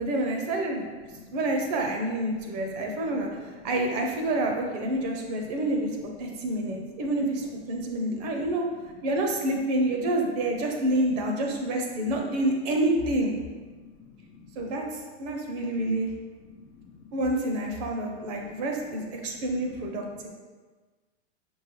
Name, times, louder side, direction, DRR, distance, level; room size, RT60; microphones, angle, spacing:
voice 1, 0.0-0.9 1.3-5.9 6.2-8.6 9.0-13.3 14.6-16.1 17.1-20.3, right 1 dB, 35° right, 2 dB, 0.5 m, -28 dB
voice 2, 1.0-1.4 2.3-3.7 5.0-5.8 6.0-7.0 7.7-8.4 12.1-12.2 13.6-14.7 15.8-16.1 16.4-17.2 18.2-18.7 19.2-20.3, left 4 dB, 75° left, 2 dB, 0.7 m, -51 dB
5.4 x 2.7 x 3.0 m, 1.4 s
supercardioid pair, 160°, 34 cm